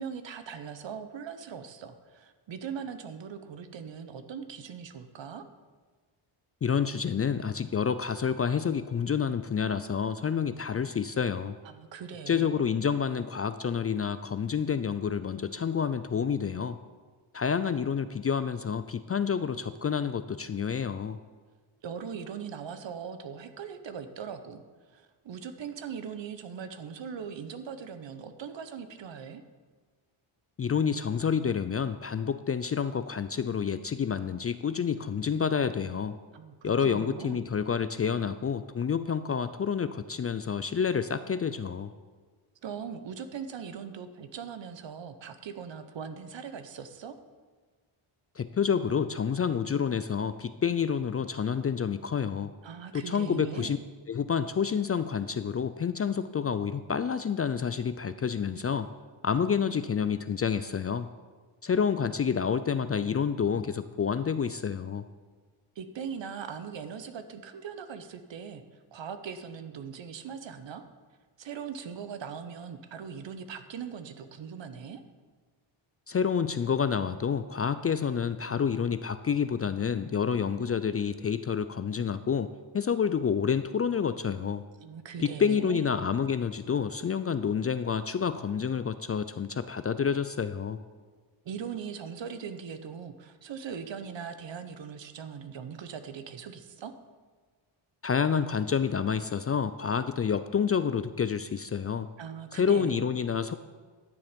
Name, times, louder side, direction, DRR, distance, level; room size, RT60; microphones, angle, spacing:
voice 1, 0.0-5.4 11.6-12.8 21.8-24.6 24.9-29.4 36.3-37.4 42.6-47.2 52.6-53.8 65.8-68.6 68.9-70.8 71.4-75.0 84.8-85.9 91.4-96.9 102.2-103.1, right 7 dB, 60° right, 9 dB, 1.0 m, -40 dB
voice 2, 6.6-11.6 12.3-16.8 17.3-21.2 30.6-36.2 36.6-41.9 48.4-52.5 52.9-53.8 54.1-58.9 59.2-61.1 61.6-65.1 76.1-82.5 82.7-84.6 85.2-90.8 98.0-102.1 102.5-103.5, left 7 dB, 30° left, 12 dB, 0.4 m, -28 dB
12.0 x 7.1 x 5.2 m, 1.5 s
cardioid pair, 75°, 49 cm